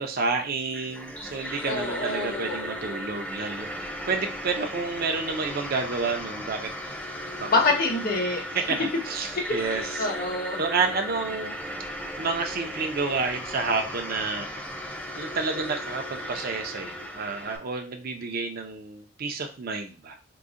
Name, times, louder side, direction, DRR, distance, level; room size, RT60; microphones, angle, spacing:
voice 1, 0.0-6.7 7.4-7.6 8.5-10.1 10.6-11.5 12.2-14.5 15.1-20.2, right 4 dB, 50° right, 4 dB, 0.5 m, -30 dB
sound 1, 0.6-17.6, equal, 5° left, 0.4 m, -36 dB
voice 2, 1.6-2.6 7.5-8.4 10.0-10.6, left 2 dB, 50° left, 2 dB, 0.9 m, -26 dB
3.8 x 2.1 x 3.6 m, 0.34 s
head